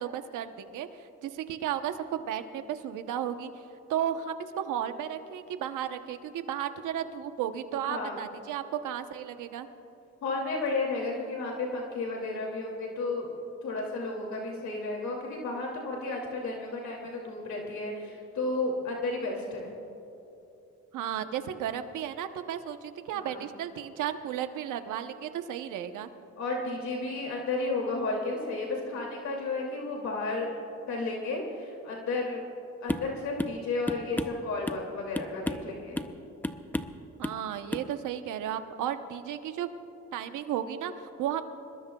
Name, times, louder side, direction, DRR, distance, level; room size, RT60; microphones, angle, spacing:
voice 1, 0.0-3.5 3.9-9.7 20.9-26.1 37.2-39.7 40.1-41.4, right 10 dB, 85° right, 9 dB, 1.0 m, -34 dB
voice 2, 7.9-8.2 10.2-13.3 13.6-19.7 23.1-23.4 26.4-30.5 30.9-32.4 32.8-36.1, left 3 dB, 65° left, -1 dB, 2.6 m, -33 dB
sound 1, 32.9-33.1 33.4-33.6 33.9-34.9 35.2-35.7 36.0-36.2 36.4-37.0 37.2-37.4 37.7-37.9, left 1 dB, 5° left, 0.6 m, -33 dB
25.5 x 21.0 x 2.3 m, 2.8 s
cardioid pair, 90°, 30 cm